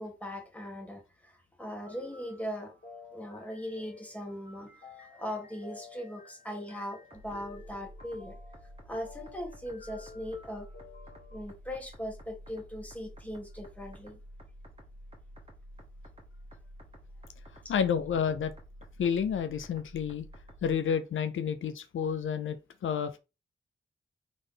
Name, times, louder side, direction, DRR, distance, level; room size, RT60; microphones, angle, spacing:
voice 1, 0.0-2.7 3.1-4.7 5.0-8.4 8.8-10.7 11.3-14.2 17.6-17.7, equal, 5° left, 1.6 m, -39 dB
sound 1, 1.6-11.4, left 5 dB, 50° left, 1.9 m, -52 dB
sound 2, 7.1-20.7, equal, 30° right, 1.3 m, -50 dB
voice 2, 17.7-18.5 19.0-20.3 20.6-23.2, left 7 dB, 80° left, 0.5 m, -30 dB
3.6 x 3.3 x 3.8 m
wide cardioid pair, 85°, 20 cm